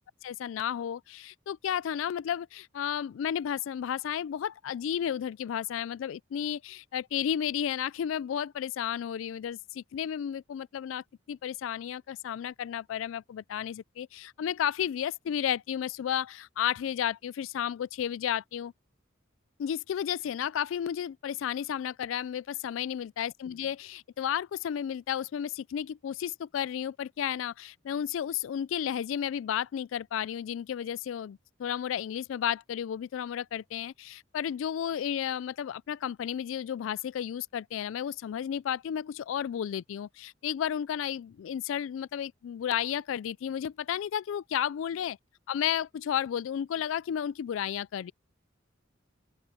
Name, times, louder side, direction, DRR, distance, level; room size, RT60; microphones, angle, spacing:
voice 1, 0.2-18.7 19.6-45.2 45.5-48.1, left 9 dB, 80° left, 0.3 m, -33 dB
open air
head